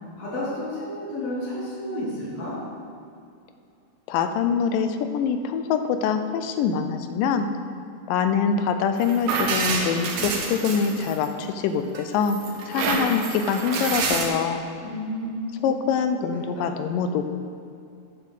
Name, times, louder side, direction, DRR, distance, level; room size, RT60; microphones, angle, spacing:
voice 1, 0.2-2.6 14.8-15.7 16.2-16.3 16.6-16.7, left 1 dB, 55° left, -9 dB, 2.8 m, -31 dB
voice 2, 4.1-7.5 8.1-12.4 12.7-14.6 15.6-17.3, left 6 dB, 85° left, 8 dB, 2.3 m, -24 dB
sound 1, 9.0-11.5 11.9-14.3, right 4 dB, 90° right, 2.8 m, -27 dB
8.4 x 6.3 x 6.5 m, 2.5 s
omnidirectional pair, 3.9 m